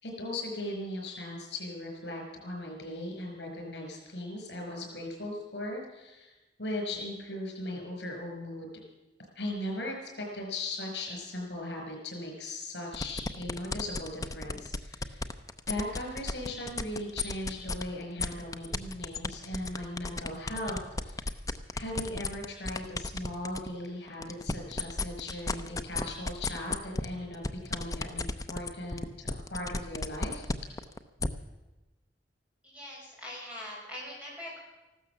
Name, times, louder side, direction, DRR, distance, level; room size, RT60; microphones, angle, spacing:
voice 1, 0.0-8.7 9.4-15.3 15.7-21.3 21.7-30.5, left 1 dB, 75° left, 1 dB, 5.2 m, -38 dB
sound 1, 12.9-17.8 18.2-23.7 24.1-31.3, left 3 dB, 20° left, 0.6 m, -33 dB
voice 2, 32.6-34.6, left 1 dB, 10° right, -5 dB, 6.3 m, -42 dB
15.0 x 12.5 x 7.1 m, 1.1 s
head